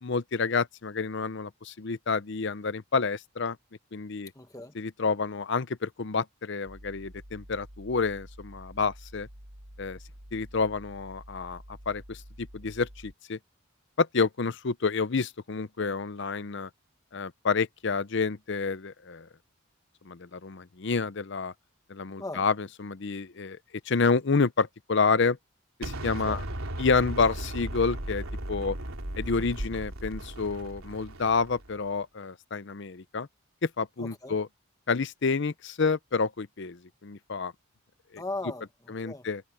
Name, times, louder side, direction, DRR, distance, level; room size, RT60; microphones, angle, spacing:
voice 1, 0.0-3.6 3.9-4.3 4.8-9.3 9.8-10.0 10.3-13.4 14.0-16.7 17.1-19.3 20.0-21.5 21.9-23.6 23.9-25.4 25.8-26.4 26.8-28.8 29.2-33.3 33.6-34.5 34.9-37.5 38.1-38.2 38.9-39.4, left 4 dB, 55° left, 0.7 m, -29 dB
voice 2, 4.3-4.7 22.2-22.5 26.2-26.4 34.0-34.4 38.2-39.3, left 2 dB, 15° left, 1.6 m, -38 dB
sound 1, 6.7-13.1, equal, 70° right, 7.9 m, -48 dB
Explosion, 25.8-31.8, right 1 dB, 85° right, 3.2 m, -36 dB
head